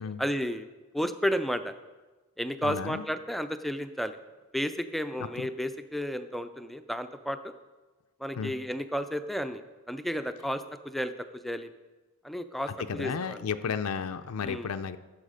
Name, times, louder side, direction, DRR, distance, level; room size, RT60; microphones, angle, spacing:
voice 1, 0.2-0.7 0.9-1.7 2.4-4.2 4.5-7.5 8.2-9.6 9.9-11.1 11.4-11.7 12.2-13.4 14.4-14.7, equal, ahead, 9 dB, 0.4 m, -32 dB
voice 2, 2.6-3.1 5.2-5.5 8.4-8.6 12.7-15.0, left 6 dB, 80° left, 8 dB, 0.5 m, -33 dB
14.0 x 7.3 x 5.0 m, 1.2 s
head